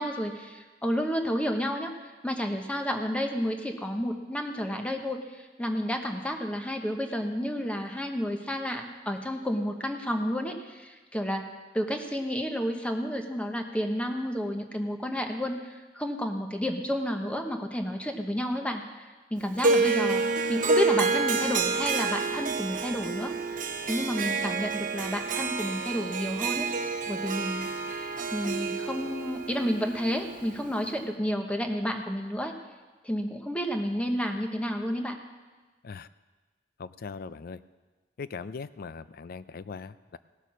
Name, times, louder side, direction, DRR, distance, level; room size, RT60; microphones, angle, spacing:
voice 1, 0.0-28.0 28.3-32.5 33.0-35.2, equal, 5° left, 4 dB, 1.0 m, -31 dB
Harp, 19.6-30.9, right 4 dB, 50° right, 0.7 m, -29 dB
voice 2, 36.8-37.6 38.2-40.2, left 5 dB, 55° left, 15 dB, 0.4 m, -40 dB
17.5 x 6.8 x 6.1 m, 1.3 s
head